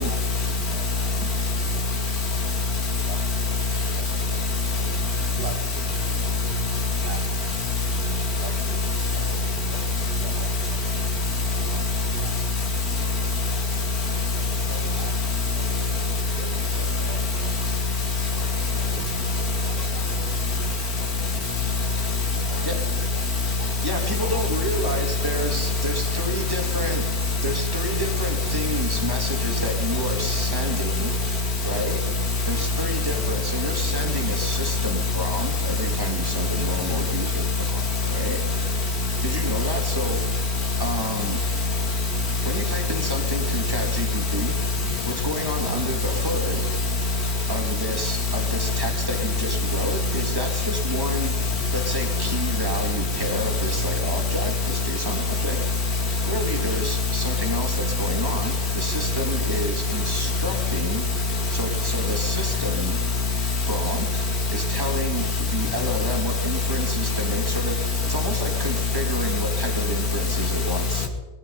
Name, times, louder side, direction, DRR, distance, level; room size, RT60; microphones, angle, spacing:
voice 1, 0.0-1.4 1.7-4.9 5.3-7.5 8.4-9.9 10.2-11.1 11.4-12.8 13.2-13.7 14.0-16.0 16.4-17.5 18.1-19.0 19.6-22.8 23.1-24.9 70.9-71.1, right 3 dB, 65° right, 2.6 m, -44 dB
voice 2, 6.6-7.2 8.7-9.3 9.9-10.4 11.0-11.1 11.4-12.1 12.9-13.2 14.0-14.2 14.8-15.2 15.7-16.0 16.6-16.7 17.2-17.6 18.2-18.3 18.8-18.9 19.2-19.5 21.6-21.7 22.0-22.1 22.6-22.8 24.0-24.1 24.9-25.1 25.5-25.8 27.0-27.2 28.0-28.1 28.5-28.6 29.2-29.7 30.1-30.4 30.7-30.9 31.3-31.4 32.2-33.1 34.7-34.8 36.3-36.7 37.3-37.4 37.9-38.1 38.4-38.7 39.5-39.6 40.6-40.7 41.2-42.4 43.9-44.6 45.6-46.2 46.6-46.7 47.0-47.3 48.4-48.7 49.2-49.3 49.9-50.1 50.6-51.1 52.3-52.8 53.6-53.7 54.0-54.1 55.2-56.3 56.6-57.0 57.8-57.9 58.2-58.3 59.5-59.6 60.0-60.1 60.9-61.4 61.8-62.3 62.7-62.8 64.3-64.4 64.7-65.3 65.7-66.1 66.8-66.9 67.2-67.4 67.8-68.1 68.5-69.0 69.3-69.4 69.7-69.8 70.5-71.1, left 3 dB, 60° left, 2.8 m, -25 dB
voice 3, 23.8-27.0 27.4-31.1 31.6-32.0 32.5-38.4 39.2-40.2 40.8-41.4 42.4-44.5 45.0-46.6 47.5-51.3 51.7-55.6 56.3-61.0 61.5-63.0 63.7-64.2 64.5-71.1, equal, 15° right, 2.5 m, -30 dB
19.5 x 13.0 x 5.5 m
omnidirectional pair, 1.8 m